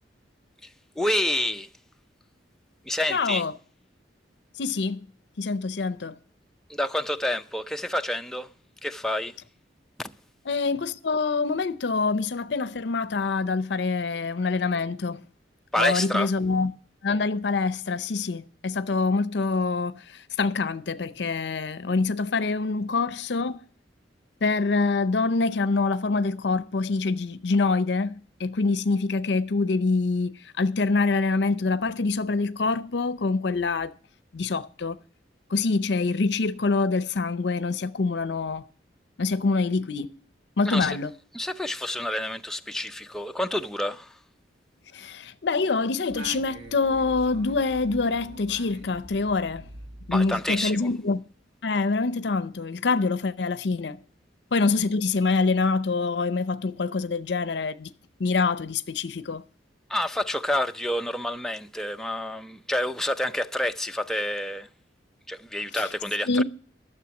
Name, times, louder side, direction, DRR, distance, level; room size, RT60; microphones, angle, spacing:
voice 1, 1.0-1.7 2.9-3.4 6.7-8.5 8.8-9.4 10.0-10.1 15.7-16.3 40.6-41.0 41.3-44.2 50.1-50.9 59.9-64.7 65.3-66.4, left 1 dB, 5° left, 0.5 m, -28 dB
voice 2, 3.1-3.5 4.6-5.0 5.4-6.1 10.5-15.2 15.8-16.7 17.0-20.0 20.4-23.6 24.4-33.9 34.3-35.0 35.5-38.6 39.2-40.1 40.6-41.1 44.9-49.6 50.1-51.2 51.6-54.0 54.5-57.9 58.2-59.4 65.7-65.8 66.3-66.4, left 4 dB, 65° left, 0.6 m, -25 dB
Singing, 46.1-50.9, right 1 dB, 70° right, 1.3 m, -43 dB
12.5 x 7.0 x 7.0 m
head